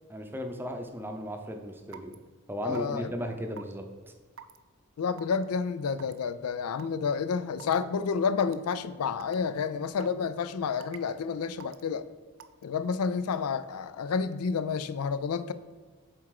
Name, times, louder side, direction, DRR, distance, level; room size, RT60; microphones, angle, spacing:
voice 1, 0.1-2.1 2.5-3.9, equal, 10° right, 4 dB, 0.6 m, -36 dB
Raindrop / Water tap faucet / Drip, 1.9-2.2 2.8-3.0 3.6-3.7 4.4-4.6 5.2-5.4 6.0-6.2 6.8-6.9 7.6-7.8 8.4-8.5 9.2-9.4 10.0-10.3 10.8-11.1 11.6-11.8 12.4-12.6, right 8 dB, 65° right, 0.5 m, -46 dB
voice 2, 2.6-3.1 5.0-12.1 12.6-15.5, left 5 dB, 90° left, 13 dB, 0.4 m, -30 dB
7.4 x 4.5 x 4.8 m, 1.4 s
head